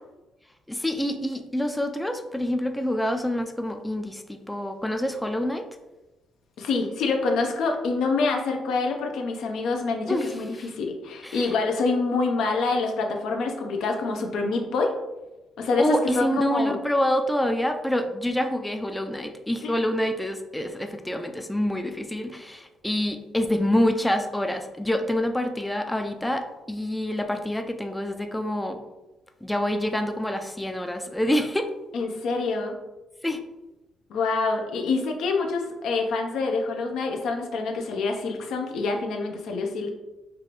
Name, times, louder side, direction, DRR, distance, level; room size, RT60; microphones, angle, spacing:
voice 1, 0.7-5.7 10.1-10.3 11.2-11.5 15.8-28.8 29.4-31.7 33.2-33.4, left 1 dB, 5° left, 5 dB, 0.4 m, -26 dB
voice 2, 6.6-14.9 15.6-16.8 19.6-19.8 31.9-32.8 34.1-39.9, left 3 dB, 80° left, 2 dB, 0.6 m, -26 dB
4.6 x 2.5 x 3.0 m, 1.0 s
cardioid pair, 90°, 0 cm